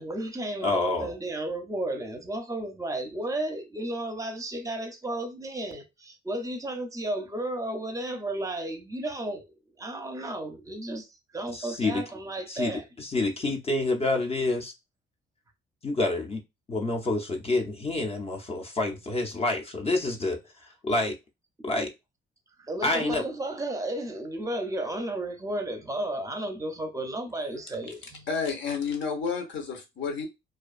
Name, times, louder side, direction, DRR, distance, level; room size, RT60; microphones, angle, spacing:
voice 1, 0.0-9.4 9.8-11.1 11.3-12.9 22.6-28.3, right 1 dB, 15° right, 0.6 m, -33 dB
voice 2, 0.6-1.1 11.5-12.0 12.5-14.7 15.8-16.4 16.7-20.4 20.8-21.1 21.6-21.9 22.8-23.2, left 2 dB, 30° left, 0.6 m, -28 dB
voice 3, 28.3-30.3, left 5 dB, 70° left, 0.9 m, -30 dB
2.5 x 2.2 x 2.4 m
cardioid pair, 90°, 20 cm